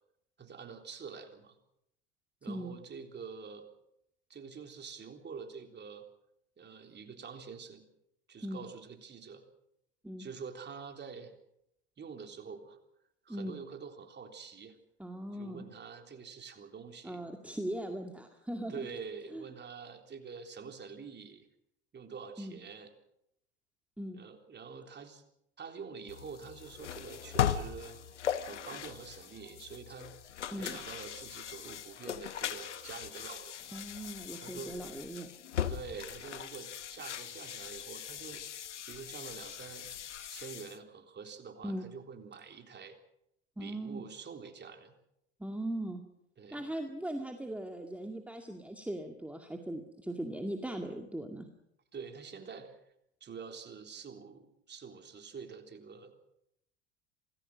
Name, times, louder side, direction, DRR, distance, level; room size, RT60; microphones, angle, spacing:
voice 1, 0.4-1.6 2.4-3.7 4.3-6.1 6.6-7.8 8.3-9.4 10.2-11.3 12.0-12.8 13.2-14.8 15.4-17.3 18.7-21.5 21.9-22.9 24.1-25.2 25.6-30.1 30.6-33.7 34.4-34.8 35.7-38.4 38.9-39.9 40.3-43.0 43.6-44.9 46.4-46.6 51.9-52.8 53.2-56.1, right 5 dB, 30° right, 5 dB, 3.7 m, -46 dB
voice 2, 15.0-15.7 17.0-18.7 19.3-19.4 22.4-22.6 24.0-24.2 30.5-30.8 33.7-35.3 41.6-41.9 43.6-44.0 45.4-46.0 46.5-51.5, right 1 dB, 5° right, 4 dB, 2.2 m, -39 dB
sound 1, 26.1-40.8, left 9 dB, 80° left, 1.2 m, -39 dB
27.0 x 19.0 x 6.3 m, 0.78 s
figure-of-eight pair, 70°, 35 cm